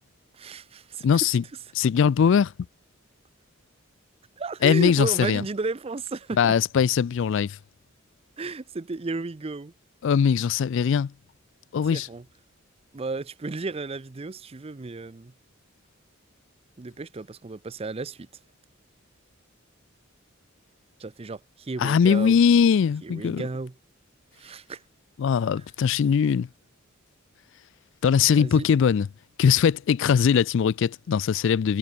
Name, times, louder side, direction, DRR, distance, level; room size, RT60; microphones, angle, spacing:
voice 1, 0.3-1.1 4.4-6.5 8.4-9.7 11.9-12.2 12.9-15.3 16.8-18.3 21.0-22.4 23.0-23.7 24.4-24.8 28.4-28.7, right 3 dB, 30° right, 0.5 m, -33 dB
voice 2, 1.0-1.4 1.7-2.5 4.6-5.4 6.4-7.6 10.0-11.1 11.7-12.1 21.8-23.4 25.2-26.5 28.0-29.1 29.4-31.8, left 7 dB, 65° left, 0.3 m, -21 dB
head